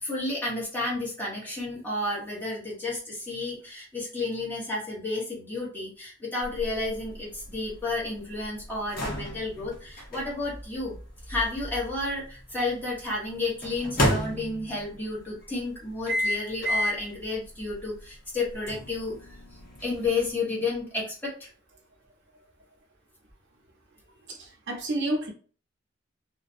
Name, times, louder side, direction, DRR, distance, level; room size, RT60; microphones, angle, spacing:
voice 1, 0.0-11.0 11.3-19.1 19.8-21.5, left 2 dB, 10° left, 1.1 m, -31 dB
sound 1, 6.4-12.5 13.6-14.9 16.1-17.1 17.6-17.7 18.7-20.3, equal, 50° left, 0.9 m, -31 dB
voice 2, 24.3-25.3, right 1 dB, 65° right, 0.7 m, -30 dB
2.5 x 2.1 x 2.5 m
head